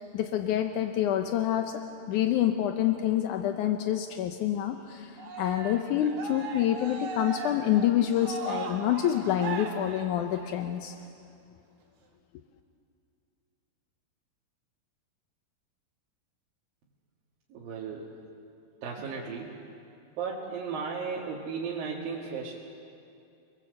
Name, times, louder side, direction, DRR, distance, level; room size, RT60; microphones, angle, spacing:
voice 1, 0.0-11.0, left 11 dB, 75° left, 6 dB, 1.8 m, -27 dB
Cheering, 5.2-10.7, right 4 dB, 85° right, 4.3 m, -38 dB
voice 2, 17.5-18.2 18.8-19.6 20.2-22.5, right 5 dB, 65° right, -4 dB, 3.6 m, -35 dB
29.5 x 21.0 x 7.9 m, 2.5 s
omnidirectional pair, 4.5 m